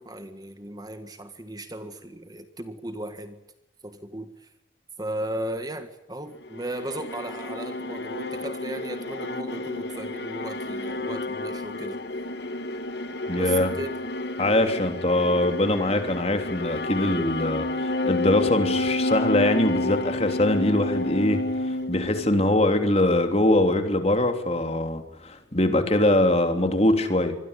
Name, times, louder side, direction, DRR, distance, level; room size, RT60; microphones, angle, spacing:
voice 1, 0.0-3.4 3.8-4.5 5.0-12.0 13.3-14.0 14.4-14.5, right 1 dB, 20° right, 9 dB, 1.7 m, -36 dB
sound 1, 6.4-22.8, left 2 dB, 60° left, 1.6 m, -30 dB
voice 2, 13.3-13.7 14.4-21.4 21.7-27.4, left 1 dB, 35° left, 6 dB, 3.2 m, -23 dB
26.0 x 22.0 x 8.4 m, 0.92 s
head